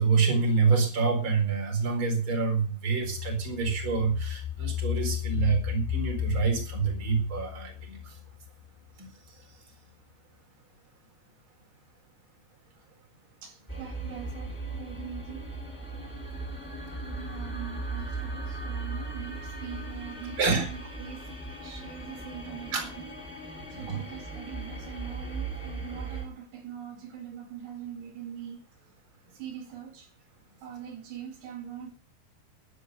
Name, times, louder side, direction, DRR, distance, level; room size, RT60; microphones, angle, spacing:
voice 1, 0.0-8.2 9.0-9.6 20.4-20.7 22.7-22.9 23.7-24.0, right 5 dB, 30° right, 4.8 m, -27 dB
sound 1, 3.0-8.7 9.1-9.2, left 11 dB, 75° left, 3.1 m, -34 dB
voice 2, 13.4-15.5 17.0-21.4 21.6-23.2 23.4-28.9 29.3-30.1 30.6-31.9, right 9 dB, 70° right, 4.3 m, -42 dB
sound 2, 13.7-26.2, right 2 dB, ahead, 6.8 m, -38 dB
12.0 x 12.0 x 6.7 m
omnidirectional pair, 5.0 m